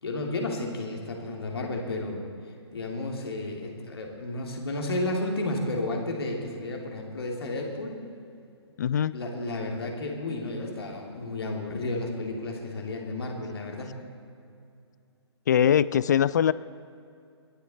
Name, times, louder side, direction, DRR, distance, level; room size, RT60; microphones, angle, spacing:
voice 1, 0.0-2.2 2.7-8.0 9.1-13.9, left 2 dB, 60° left, 1 dB, 2.8 m, -32 dB
voice 2, 8.8-9.2 15.5-16.5, left 9 dB, 40° left, 19 dB, 0.3 m, -22 dB
21.0 x 11.5 x 4.2 m, 2.5 s
figure-of-eight pair, 130°, 15 cm